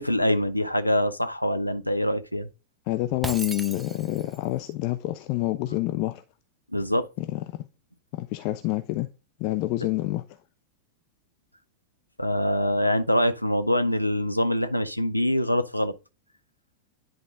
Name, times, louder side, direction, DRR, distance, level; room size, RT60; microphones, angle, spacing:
voice 1, 0.0-2.5 6.7-7.1 12.2-15.9, left 1 dB, 90° left, 0.6 m, -24 dB
voice 2, 2.9-6.2 7.2-7.4 8.1-9.1 9.4-10.2, left 17 dB, 45° left, 0.5 m, -27 dB
Shatter, 3.2-4.4, right 3 dB, 10° right, 0.5 m, -36 dB
10.5 x 3.7 x 3.7 m
figure-of-eight pair, 90°, 0 cm